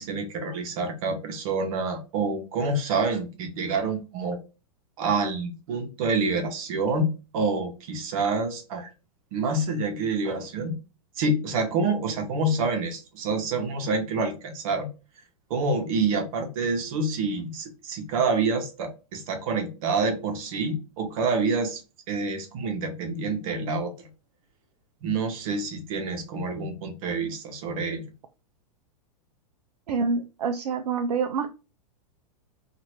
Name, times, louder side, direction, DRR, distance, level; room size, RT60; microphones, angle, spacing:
voice 1, 0.0-4.4 5.0-8.9 9.3-10.8 11.2-14.9 15.5-21.8 22.1-24.1 25.0-28.0, right 3 dB, 60° right, 1.1 m, -27 dB
voice 2, 29.9-31.5, right 5 dB, 80° right, 0.5 m, -27 dB
2.8 x 2.6 x 3.1 m
hypercardioid pair, 125°, 20 cm